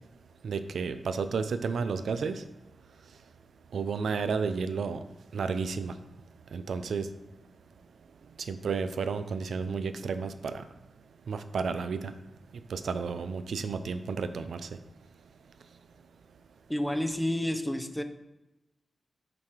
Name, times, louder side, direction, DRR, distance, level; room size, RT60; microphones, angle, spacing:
voice 1, 0.4-2.4 3.7-5.0 5.3-5.9 6.5-7.1 8.4-10.6 11.3-12.1 12.7-14.7, right 5 dB, 85° right, 10 dB, 0.4 m, -32 dB
voice 2, 16.7-18.0, left 1 dB, 5° left, 8 dB, 0.5 m, -30 dB
5.9 x 4.8 x 4.5 m, 0.96 s
wide cardioid pair, 90°, 0 cm